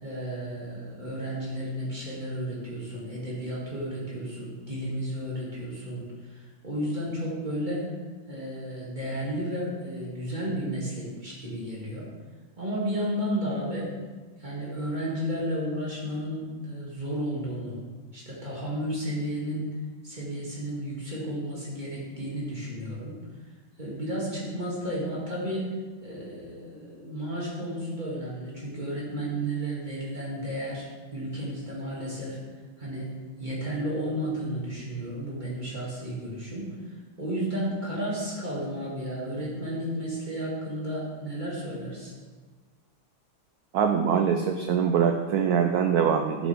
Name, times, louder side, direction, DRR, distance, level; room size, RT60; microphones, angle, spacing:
voice 1, 0.0-7.9 8.3-12.1 12.6-13.9 14.4-17.8 18.1-19.7 20.0-23.2 23.8-25.7 26.0-30.9 31.1-32.4 32.8-33.1 33.4-36.7 37.2-42.1, equal, 20° right, -6 dB, 2.6 m, -32 dB
voice 2, 43.7-46.5, right 7 dB, 90° right, 6 dB, 0.8 m, -23 dB
11.0 x 7.3 x 3.6 m, 1.4 s
omnidirectional pair, 2.2 m